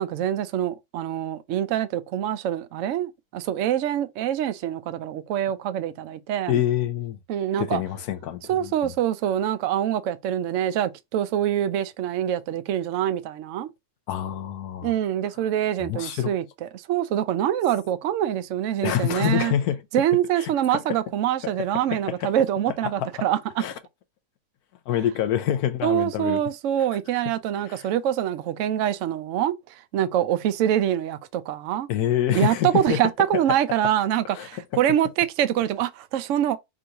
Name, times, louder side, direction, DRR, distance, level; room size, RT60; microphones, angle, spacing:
voice 1, 0.0-6.6 7.3-7.8 8.5-13.7 14.8-19.5 19.9-23.6 25.8-31.9 32.3-36.6, right 11 dB, 65° right, 0.8 m, -25 dB
voice 2, 6.5-7.2 7.6-8.9 14.1-14.9 15.8-16.3 18.8-19.8 20.4-20.8 21.9-22.3 22.8-23.1 23.6-23.7 24.9-26.4 27.7-27.9 31.9-33.0 34.3-34.5, left 11 dB, 80° left, 1.2 m, -26 dB
3.8 x 2.6 x 4.4 m
omnidirectional pair, 1.6 m